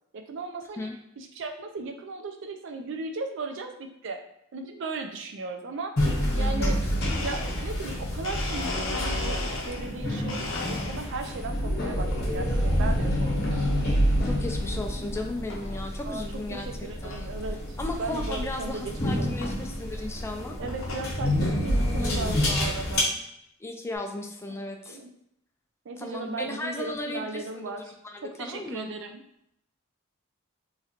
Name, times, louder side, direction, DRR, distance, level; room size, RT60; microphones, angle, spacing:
voice 1, 0.1-0.9 1.2-4.2 4.5-6.0 6.3-6.9 7.2-13.7 16.1-16.2 16.5-19.5 20.6-23.2 24.5-25.1 25.9-27.9 28.4-29.2, right 3 dB, 65° right, 5 dB, 0.4 m, -37 dB
sound 1, 6.0-23.0, equal, 50° left, 0.9 m, -28 dB
voice 2, 6.4-6.8 14.3-16.7 17.0-17.3 17.8-20.6 22.0-22.9 23.6-25.0 26.0-27.7 28.1-28.9, left 2 dB, 15° left, 3 dB, 0.3 m, -36 dB
Domestic sounds home sounds, 7.0-9.9 10.3-11.3 11.8-12.3 13.3-13.6 14.2-14.3 15.1-15.2 15.5-15.8 16.3-16.4 16.5-16.6 17.1-17.2 18.5-18.6 19.4-19.6 20.2-21.1, left 2 dB, 70° left, 0.6 m, -35 dB
3.1 x 2.4 x 2.8 m, 0.76 s
head